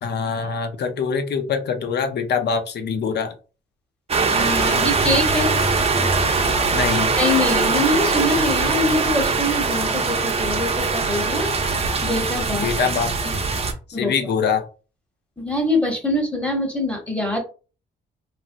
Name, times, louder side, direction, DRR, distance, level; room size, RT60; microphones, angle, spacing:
voice 1, 0.0-3.3 6.7-7.1 12.6-13.1 13.9-14.6, left 6 dB, 55° left, 7 dB, 0.7 m, -24 dB
sound 1, 4.1-13.7, right 4 dB, 30° right, 0.6 m, -21 dB
voice 2, 4.3-5.5 7.2-12.7 13.2-13.3 13.9-14.1 15.4-17.4, left 1 dB, 5° left, 2 dB, 1.1 m, -24 dB
3.1 x 2.6 x 2.5 m, 0.35 s
cardioid pair, 90°, 20 cm